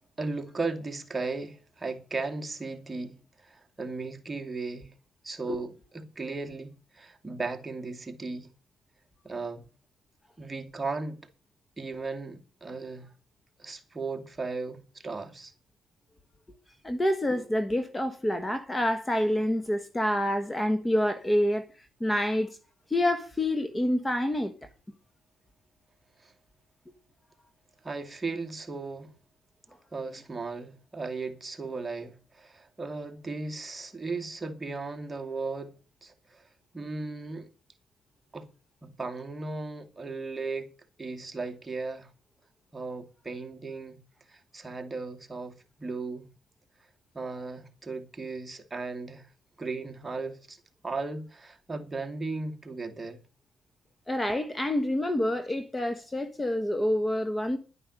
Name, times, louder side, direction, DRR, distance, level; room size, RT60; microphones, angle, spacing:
voice 1, 0.2-4.9 5.2-8.5 9.2-9.6 10.4-11.2 11.8-13.1 13.6-15.5 26.2-26.3 27.8-29.1 29.9-35.7 36.0-36.5 36.7-37.5 38.3-38.5 38.8-40.7 41.0-42.1 42.7-44.0 44.3-46.3 47.1-49.3 49.6-50.6 50.8-53.2, right 3 dB, 20° right, 2.6 m, -36 dB
voice 2, 16.8-21.6 22.0-22.6 22.9-24.5 54.1-57.6, left 1 dB, 15° left, 1.4 m, -27 dB
11.5 x 9.9 x 6.4 m
cardioid pair, 90°, 0 cm